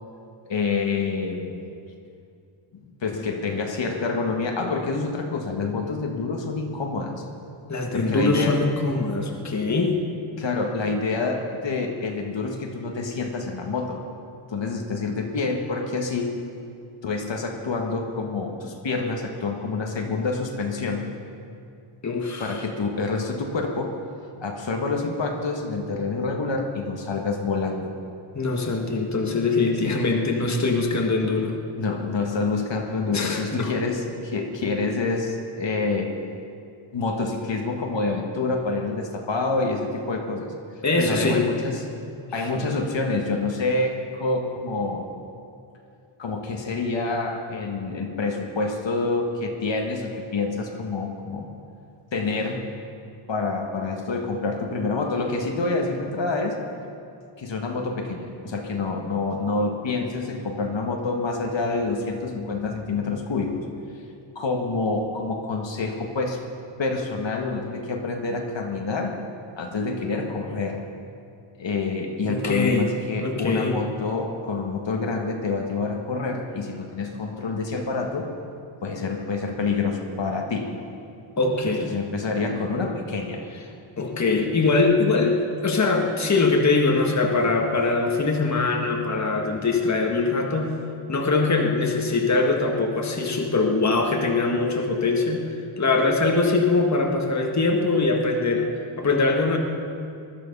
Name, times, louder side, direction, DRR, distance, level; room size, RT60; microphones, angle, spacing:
voice 1, 0.5-1.5 3.0-7.2 7.9-8.6 10.4-14.0 14.5-16.4 17.0-21.1 22.4-24.0 24.4-27.9 29.8-30.0 31.8-36.1 36.9-40.5 41.0-41.9 42.3-45.1 46.2-51.5 52.1-52.6 53.3-56.6 57.4-63.7 64.3-66.4 66.8-69.2 69.6-70.8 71.6-78.3 78.8-80.7 81.8-83.4, left 3 dB, 60° left, 2 dB, 1.6 m, -27 dB
voice 2, 7.7-10.0 22.0-22.6 28.3-31.6 33.1-33.7 40.8-41.4 72.2-72.9 73.2-73.8 81.4-81.9 84.0-90.7 91.1-95.5 95.8-98.7 99.0-99.6, left 3 dB, 35° left, 1 dB, 1.7 m, -22 dB
20.0 x 12.5 x 5.4 m, 2.5 s
wide cardioid pair, 115°, 49 cm